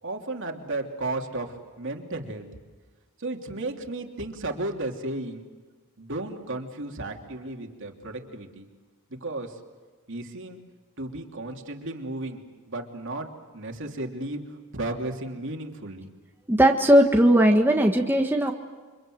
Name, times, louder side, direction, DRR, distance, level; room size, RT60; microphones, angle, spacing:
voice 1, 0.0-2.5 3.2-5.4 6.0-8.7 9.1-9.6 10.1-10.6 11.0-16.1, right 2 dB, 60° right, 3 dB, 3.0 m, -34 dB
voice 2, 16.5-18.5, right 1 dB, 10° right, 2 dB, 1.4 m, -18 dB
29.5 x 24.5 x 7.9 m, 1.4 s
head